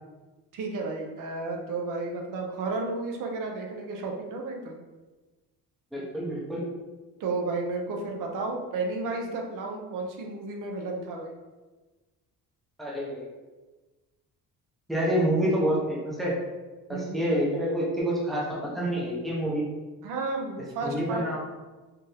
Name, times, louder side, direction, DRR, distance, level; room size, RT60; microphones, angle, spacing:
voice 1, 0.5-4.8 7.2-11.4 16.9-17.2 20.0-21.4, right 3 dB, 65° right, 1 dB, 0.7 m, -32 dB
voice 2, 5.9-6.6 12.8-13.3 14.9-16.4 17.1-19.7 20.8-21.4, equal, ahead, -5 dB, 0.6 m, -27 dB
4.4 x 2.6 x 3.3 m, 1.2 s
cardioid pair, 175°, 34 cm